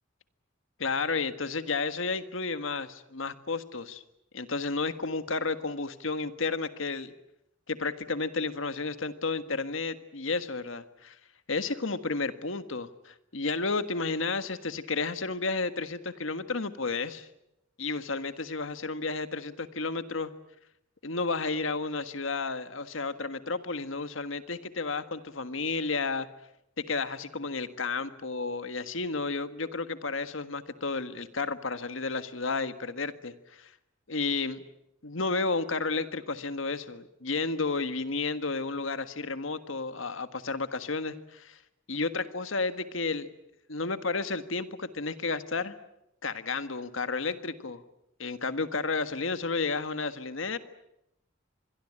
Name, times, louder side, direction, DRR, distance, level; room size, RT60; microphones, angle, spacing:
voice 1, 0.8-4.0 4.3-7.1 7.7-11.1 11.5-17.3 17.8-20.3 21.0-26.3 26.8-33.7 34.1-34.6 35.0-41.6 41.9-43.3 43.7-45.7 46.2-47.8 48.2-50.6, left 3 dB, 80° left, 11 dB, 1.6 m, -32 dB
26.0 x 22.0 x 8.8 m, 0.83 s
head